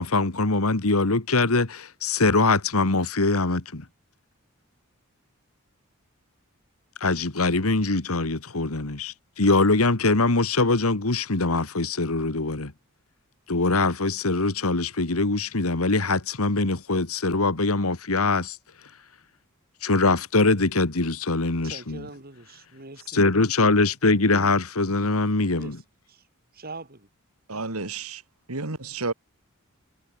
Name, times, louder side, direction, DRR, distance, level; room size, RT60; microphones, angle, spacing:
voice 1, 0.0-3.8 7.0-12.7 13.5-18.6 19.8-22.1 23.1-25.8, left 3 dB, 80° left, 1.9 m, -23 dB
voice 2, 21.6-23.3 25.5-25.8 26.1-26.2 26.5-27.1, right 3 dB, 45° right, 4.1 m, -42 dB
voice 3, 27.5-28.2 28.5-29.1, right 3 dB, 85° right, 2.7 m, -31 dB
head